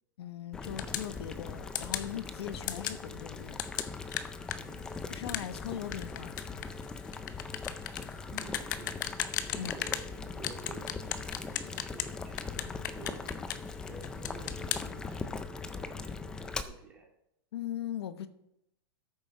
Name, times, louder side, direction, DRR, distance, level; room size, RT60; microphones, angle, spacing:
voice 1, 0.2-3.6 5.1-6.6 9.5-9.7 17.5-18.3, left 10 dB, 90° left, 12 dB, 1.0 m, -39 dB
Boiling, 0.5-16.6, left 4 dB, 5° left, 0.3 m, -40 dB
sound 1, 0.8-1.1 1.7-2.1 2.7-3.0 3.6-10.1 10.4-12.1 12.4-13.7 14.0-14.8, left 11 dB, 50° left, 0.8 m, -36 dB
voice 2, 4.6-5.0 8.3-9.1 9.5-13.3 13.8-17.1, right 3 dB, 10° right, -1 dB, 2.1 m, -51 dB
13.0 x 7.2 x 5.0 m, 0.81 s
supercardioid pair, 175°, 13 cm